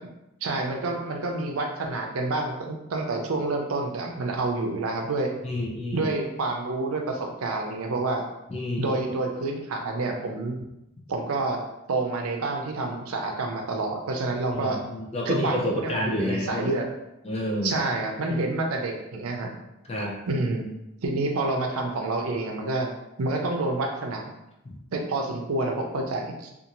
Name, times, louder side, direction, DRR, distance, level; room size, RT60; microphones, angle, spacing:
voice 1, 0.4-5.3 5.9-8.2 8.8-10.6 11.1-11.6 11.9-14.8 15.3-16.9 17.6-19.5 20.3-20.7 21.0-22.9 23.2-24.3 24.9-26.5, right 2 dB, 75° right, 2 dB, 0.5 m, -28 dB
voice 2, 5.4-6.1 8.5-9.0 14.5-16.7 17.2-17.8 19.9-20.2 24.6-24.7, left 1 dB, 30° left, -2 dB, 0.5 m, -29 dB
2.6 x 2.4 x 2.9 m, 0.89 s
head